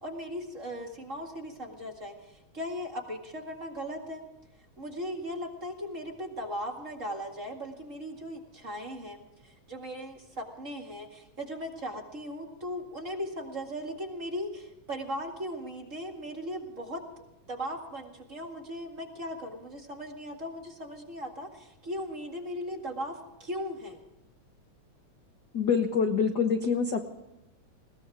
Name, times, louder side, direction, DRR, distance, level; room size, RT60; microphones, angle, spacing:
voice 1, 0.0-4.2 4.8-17.0 17.5-24.0, equal, 30° right, 1 dB, 2.1 m, -38 dB
voice 2, 25.5-27.0, left 6 dB, 55° left, 5 dB, 1.1 m, -25 dB
21.0 x 18.0 x 3.6 m, 0.90 s
omnidirectional pair, 3.4 m